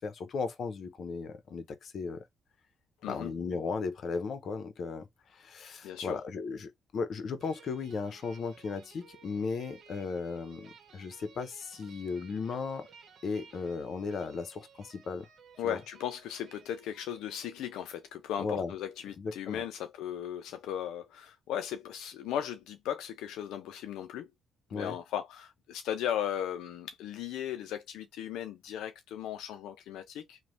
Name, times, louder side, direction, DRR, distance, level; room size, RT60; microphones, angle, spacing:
voice 1, 0.0-2.2 3.1-12.9 13.2-15.3 15.6-15.8 18.4-18.7 19.2-19.6 24.7-25.0, left 4 dB, 60° left, 0.7 m, -36 dB
voice 2, 3.0-3.3 5.8-6.2 15.6-24.3 24.7-30.4, left 10 dB, 90° left, 0.3 m, -37 dB
sound 1, 7.4-18.1, right 6 dB, 65° right, 0.9 m, -57 dB
3.1 x 2.1 x 2.6 m
cardioid pair, 90°, 0 cm